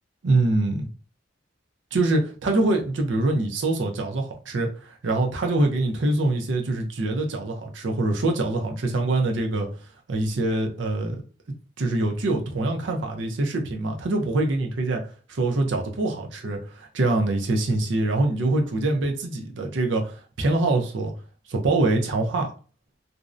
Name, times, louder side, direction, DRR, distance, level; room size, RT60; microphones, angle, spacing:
voice 1, 0.2-0.9 1.9-9.7 10.1-11.2 11.8-15.0 15.3-21.1 21.5-22.5, right 2 dB, 80° right, 0.5 m, -24 dB
2.5 x 2.0 x 2.4 m
head